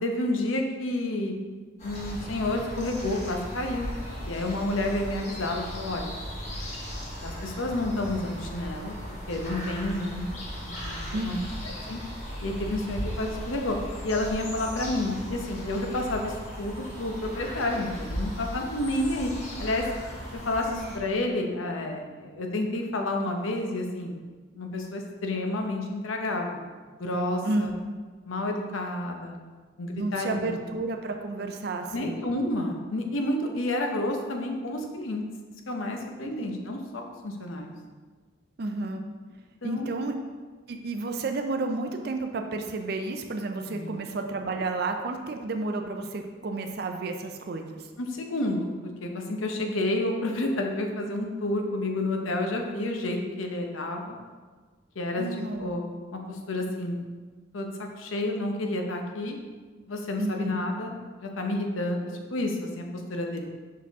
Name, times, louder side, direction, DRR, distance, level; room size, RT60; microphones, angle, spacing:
voice 1, 0.0-1.3 1.8-3.9 4.2-6.1 7.2-9.0 9.3-10.4 10.7-11.0 11.2-11.3 11.6-12.0 12.4-13.8 14.0-19.3 19.6-19.8 20.3-24.2 24.5-26.6 27.0-27.7 28.3-29.4 29.8-30.6 31.9-35.2 35.7-37.7 39.6-40.0 43.7-44.0 48.0-54.2 54.9-55.2 55.6-55.8 56.1-57.0 57.5-57.7 58.0-59.4 59.9-63.5, left 1 dB, 90° left, 2 dB, 0.8 m, -30 dB
sound 1, 1.8-21.0, equal, 35° left, 1.4 m, -37 dB
voice 2, 11.1-11.5 20.7-20.9 27.4-27.8 29.9-32.2 36.2-36.6 38.6-39.0 39.6-40.1 40.7-47.9 55.2-55.8 60.2-60.6, right 3 dB, 50° right, 5 dB, 0.4 m, -31 dB
5.8 x 4.7 x 3.5 m, 1.4 s
head